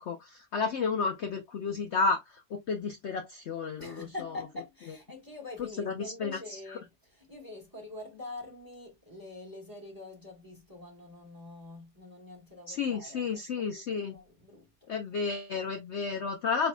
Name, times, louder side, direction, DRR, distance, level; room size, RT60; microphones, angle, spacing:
voice 1, 0.0-2.2 2.5-4.1 5.6-6.8 12.7-14.2 14.9-16.7, left 5 dB, 70° left, 0.6 m, -32 dB
voice 2, 3.8-13.8 14.1-15.2, left 2 dB, 15° right, 1.2 m, -45 dB
4.2 x 4.0 x 2.2 m
omnidirectional pair, 1.9 m